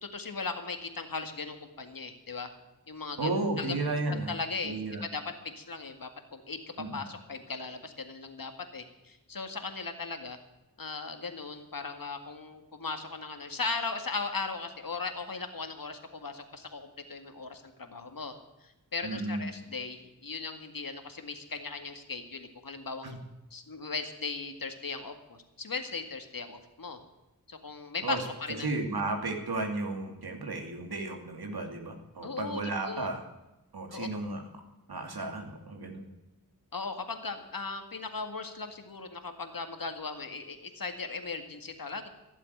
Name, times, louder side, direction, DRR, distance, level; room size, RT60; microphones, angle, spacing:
voice 1, 0.0-2.5 2.9-3.3 3.6-3.8 4.1-5.2 5.6-6.6 6.9-10.4 10.8-18.3 18.6-23.2 23.5-27.0 27.5-28.7 32.2-33.1 33.9-34.1 36.7-42.1, left 4 dB, 65° left, 6 dB, 2.0 m, -38 dB
voice 2, 3.2-4.3 4.6-5.0 6.8-7.0 19.0-19.5 23.0-23.2 28.0-28.2 28.6-33.2 33.7-34.4 34.9-36.0, right 2 dB, 85° right, 3 dB, 2.7 m, -33 dB
15.5 x 7.6 x 9.3 m, 0.99 s
wide cardioid pair, 65°, 37 cm